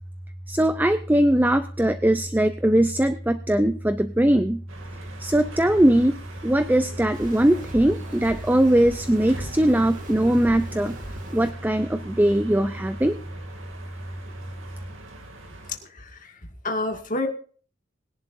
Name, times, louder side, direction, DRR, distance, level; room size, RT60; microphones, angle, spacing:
voice 1, 0.5-4.6 5.2-6.1 6.4-11.0 11.3-13.2, right 1 dB, 10° right, 9 dB, 0.5 m, -20 dB
sound 1, 4.7-15.8, right 2 dB, 90° right, 2.5 m, -43 dB
sound 2, 7.1-11.5, right 1 dB, 40° right, 2.1 m, -40 dB
voice 2, 15.7-16.4 16.6-17.3, left 2 dB, 40° left, 3 dB, 2.1 m, -29 dB
21.0 x 11.0 x 2.6 m, 0.41 s
head